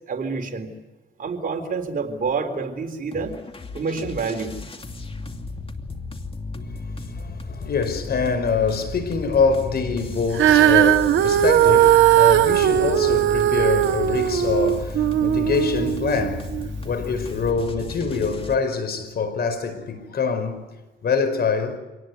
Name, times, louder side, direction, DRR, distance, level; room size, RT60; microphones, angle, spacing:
voice 1, 0.1-0.7 1.2-3.4 3.7-4.6, right 4 dB, 45° right, 4.0 m, -28 dB
sound 1, 3.1-18.6, left 3 dB, 30° left, 2.6 m, -34 dB
voice 2, 7.1-16.5 16.8-20.7 21.0-21.8, left 5 dB, 55° left, 5.1 m, -24 dB
Female singing, 10.3-16.7 17.4-17.5, right 12 dB, 75° right, 1.2 m, -18 dB
26.5 x 19.5 x 9.4 m
cardioid pair, 90°, 20 cm